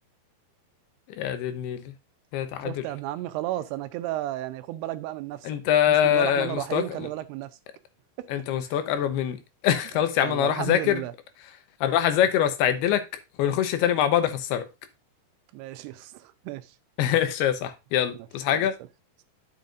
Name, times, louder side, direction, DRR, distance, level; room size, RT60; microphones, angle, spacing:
voice 1, 1.2-1.9 2.3-2.7 5.5-6.8 8.3-9.4 9.6-11.0 11.8-13.0 13.4-14.7 17.0-18.8, left 10 dB, 85° left, 2.9 m, -24 dB
voice 2, 2.6-5.5 5.9-7.6 8.2-8.3 8.6-8.8 9.9-11.1 15.5-16.7 18.1-18.7, right 15 dB, 85° right, 2.7 m, -34 dB
10.5 x 6.9 x 2.5 m
omnidirectional pair, 4.6 m